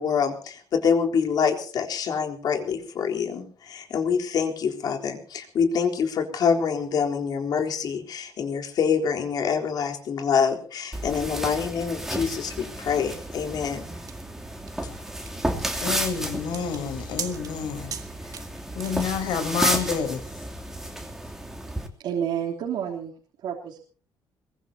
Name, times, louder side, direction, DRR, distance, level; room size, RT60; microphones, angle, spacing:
voice 1, 0.0-14.0, left 6 dB, 55° left, 3.8 m, -26 dB
sound 1, 10.9-21.9, right 1 dB, 5° right, 3.1 m, -32 dB
sound 2, 13.1-19.4, right 8 dB, 50° right, 2.2 m, -40 dB
voice 2, 15.8-18.0 18.7-20.2, left 6 dB, 75° left, 5.2 m, -28 dB
voice 3, 22.0-23.1 23.4-23.8, right 8 dB, 70° right, 3.4 m, -29 dB
22.5 x 21.0 x 2.9 m
cardioid pair, 145°, 8 cm